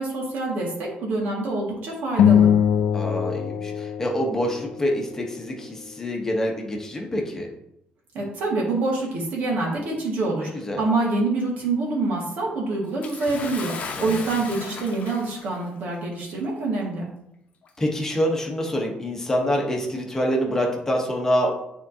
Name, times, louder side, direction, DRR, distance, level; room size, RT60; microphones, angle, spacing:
voice 1, 0.0-2.5 8.1-10.5 10.8-17.1, right 3 dB, 65° right, -2 dB, 1.9 m, -26 dB
sound 1, 2.2-4.8, left 9 dB, 80° left, 0.4 m, -21 dB
voice 2, 2.9-7.5 10.4-10.8 13.9-14.2 17.8-21.5, equal, 15° left, 0 dB, 1.1 m, -26 dB
Bathtub (filling or washing) / Splash splatter, 13.0-15.6 16.5-16.6 17.6-17.7, left 5 dB, 50° left, 0.9 m, -36 dB
9.4 x 3.7 x 2.8 m, 0.78 s
cardioid pair, 155°, 3 cm